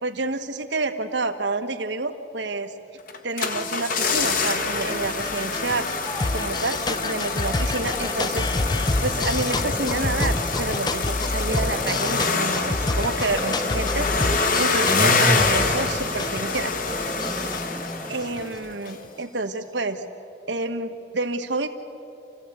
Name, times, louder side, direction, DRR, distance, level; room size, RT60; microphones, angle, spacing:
voice 1, 0.0-2.7 3.2-5.9 6.3-8.5 9.0-16.7 18.1-20.0 20.5-21.7, right 3 dB, 80° right, 7 dB, 1.4 m, -29 dB
sound 1, 3.1-18.6 18.9-19.0, left 4 dB, 50° left, 1.3 m, -26 dB
sound 2, 3.5-19.1, left 2 dB, 25° left, 0.5 m, -29 dB
sound 3, 6.0-18.4, equal, 5° right, 0.9 m, -37 dB
27.5 x 16.0 x 8.3 m, 2.9 s
head